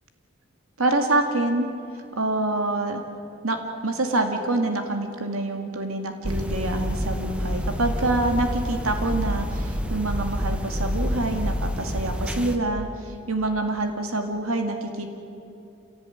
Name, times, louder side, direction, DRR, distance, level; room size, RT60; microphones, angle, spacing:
voice 1, 0.8-1.7 2.2-3.0 3.4-3.6 3.8-15.1, right 2 dB, 85° right, 4 dB, 2.2 m, -26 dB
sound 1, 6.2-12.6, equal, 5° right, 1.2 m, -28 dB
27.0 x 17.5 x 9.4 m, 2.7 s
head